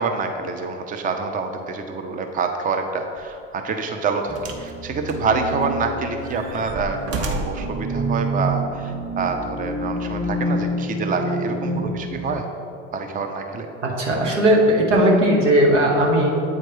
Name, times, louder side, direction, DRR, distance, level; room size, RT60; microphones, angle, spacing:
voice 1, 0.0-12.4 12.9-13.7, right 4 dB, 25° right, 5 dB, 0.6 m, -26 dB
sound 1, 3.2-3.4 4.4-4.7 5.1-5.8 6.2-7.7 8.6-8.7, right 2 dB, 40° right, 0.9 m, -31 dB
sound 2, 4.3-12.4, right 1 dB, ahead, 0.8 m, -28 dB
voice 2, 14.0-16.3, right 1 dB, 80° right, -2 dB, 1.1 m, -17 dB
8.2 x 4.5 x 3.0 m, 2.7 s
figure-of-eight pair, 65°, 36 cm